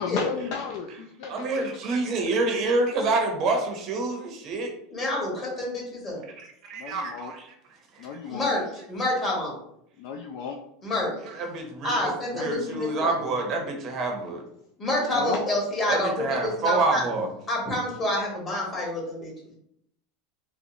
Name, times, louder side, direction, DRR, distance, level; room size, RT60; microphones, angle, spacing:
voice 1, 0.0-1.9 2.3-2.4 6.8-7.3 8.0-8.5 10.0-10.6 12.3-12.8 15.1-15.4, left 6 dB, 60° left, 2 dB, 0.3 m, -34 dB
voice 2, 1.3-4.7 6.4-7.5 7.9-8.1 11.3-14.4 15.9-17.3, right 3 dB, 45° right, 3 dB, 0.7 m, -27 dB
voice 3, 4.9-6.2 8.3-9.6 10.8-11.1 11.8-13.3 14.8-17.0 17.5-19.3, left 1 dB, 25° left, -2 dB, 1.4 m, -28 dB
3.8 x 2.0 x 2.7 m, 0.73 s
supercardioid pair, 130°, 0 cm